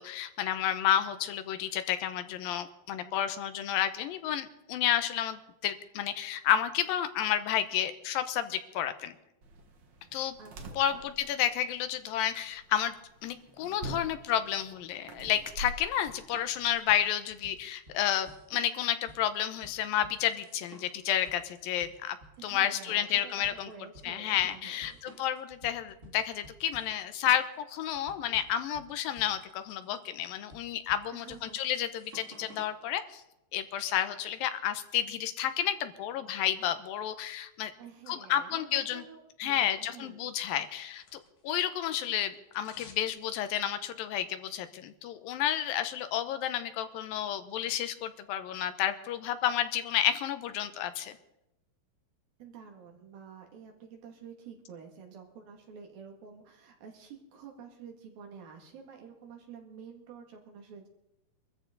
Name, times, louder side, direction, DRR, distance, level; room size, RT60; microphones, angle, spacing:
voice 1, 0.0-9.1 10.1-10.4 10.8-13.0 13.2-22.2 22.4-23.7 24.0-33.2 33.5-37.7 38.1-39.0 39.4-51.2, left 10 dB, 80° left, 10 dB, 2.7 m, -31 dB
sound 1, 9.4-16.7, right 1 dB, 55° right, 1.3 m, -46 dB
voice 2, 10.4-11.1 22.4-25.2 31.1-31.6 37.8-40.3 52.4-60.9, right 6 dB, 80° right, 2 dB, 4.0 m, -49 dB
sound 2, 15.2-32.8, right 2 dB, 25° right, 2.0 m, -54 dB
sound 3, 40.3-41.6 41.8-43.1 43.4-43.5, left 6 dB, 65° left, 3.2 m, -55 dB
23.0 x 14.0 x 3.9 m, 0.88 s
omnidirectional pair, 4.1 m